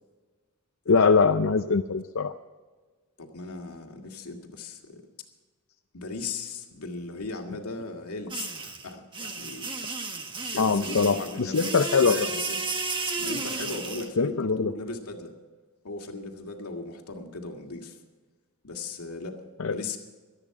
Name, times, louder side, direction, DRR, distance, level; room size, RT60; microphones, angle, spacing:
voice 1, 0.9-2.3 10.6-12.3 14.2-14.7 19.6-19.8, left 5 dB, 65° left, 7 dB, 0.6 m, -22 dB
voice 2, 3.2-5.1 5.9-9.7 10.5-12.6 13.2-15.3 15.8-18.0 18.6-19.4 19.7-20.0, left 3 dB, 90° left, 2 dB, 2.2 m, -37 dB
sound 1, 8.3-14.1, right 3 dB, 20° right, 1.3 m, -33 dB
18.0 x 13.0 x 4.9 m, 1.4 s
head